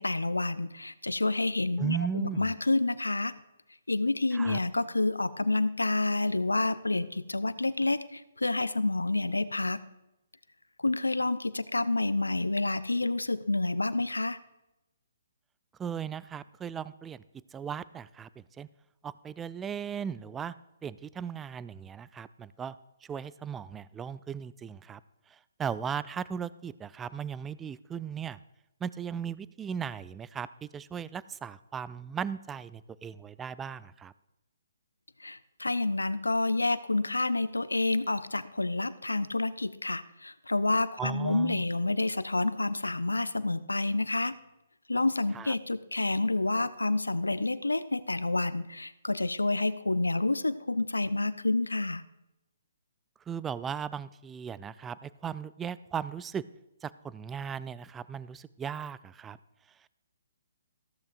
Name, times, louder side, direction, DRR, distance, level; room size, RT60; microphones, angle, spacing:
voice 1, 0.0-3.3 3.9-9.8 10.8-14.4 35.2-44.4 44.9-52.0, left 2 dB, 85° left, 15 dB, 0.5 m, -29 dB
voice 2, 1.8-2.5 4.3-4.6 15.8-17.2 17.5-18.7 19.0-20.5 20.8-22.8 23.1-25.0 25.3-28.4 28.8-34.1 41.0-41.6 45.3-45.5 53.3-56.4 56.8-59.4, right 7 dB, 15° right, 17 dB, 0.3 m, -37 dB
14.5 x 13.5 x 2.6 m, 0.94 s
figure-of-eight pair, 130°, 0 cm